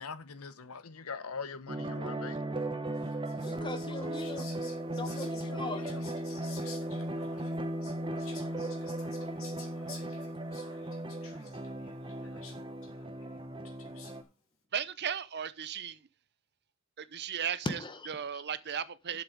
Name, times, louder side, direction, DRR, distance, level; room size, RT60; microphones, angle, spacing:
voice 1, 0.0-2.4 5.0-6.0, left 5 dB, 85° left, 0.9 m, -43 dB
sound 1, 1.7-14.2, right 1 dB, 25° right, 1.0 m, -37 dB
Whispering, 2.9-14.3, left 5 dB, 65° left, 2.9 m, -52 dB
voice 2, 3.4-4.5 4.9-5.8 17.6-18.4, left 2 dB, 20° left, 1.1 m, -39 dB
voice 3, 14.7-16.0 17.0-17.8 18.1-19.2, right 8 dB, 50° right, 0.7 m, -36 dB
7.8 x 7.1 x 5.2 m
head